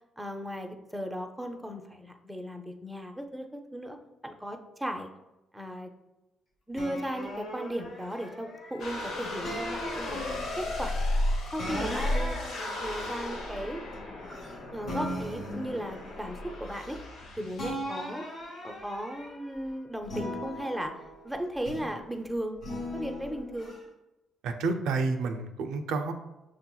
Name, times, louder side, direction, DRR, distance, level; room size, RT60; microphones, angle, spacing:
voice 1, 0.2-4.0 4.2-5.1 5.5-5.9 6.7-10.2 10.6-11.0 11.5-12.4 12.8-13.8 14.7-17.0 17.4-18.2 18.6-20.9 21.2-22.6 22.9-23.7, equal, 5° right, 3 dB, 0.5 m, -36 dB
sound 1, 6.7-8.9 9.4-10.8 11.6-14.5 14.9-17.2 17.5-19.6 20.0-22.0 22.6-23.8, equal, 65° left, 1.2 m, -39 dB
sound 2, 8.8-17.7, left 1 dB, 85° left, 0.8 m, -34 dB
voice 2, 24.4-26.1, right 3 dB, 85° right, 6 dB, 0.3 m, -29 dB
6.1 x 2.8 x 2.2 m, 0.98 s
cardioid pair, 90°, 0 cm